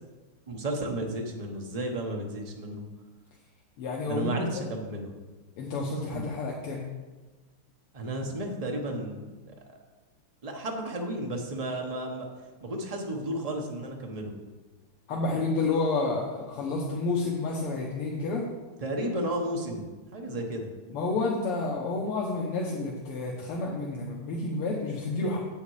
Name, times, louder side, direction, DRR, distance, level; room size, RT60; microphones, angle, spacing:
voice 1, 0.5-2.8 4.0-5.1 6.1-6.2 7.9-9.5 10.4-12.3 12.6-14.3 18.8-20.7, right 1 dB, 35° right, 1 dB, 0.6 m, -33 dB
voice 2, 3.8-4.7 5.6-6.9 15.1-18.4 20.9-25.4, left 3 dB, 85° left, -2 dB, 1.9 m, -30 dB
8.1 x 7.0 x 4.8 m, 1.2 s
omnidirectional pair, 2.4 m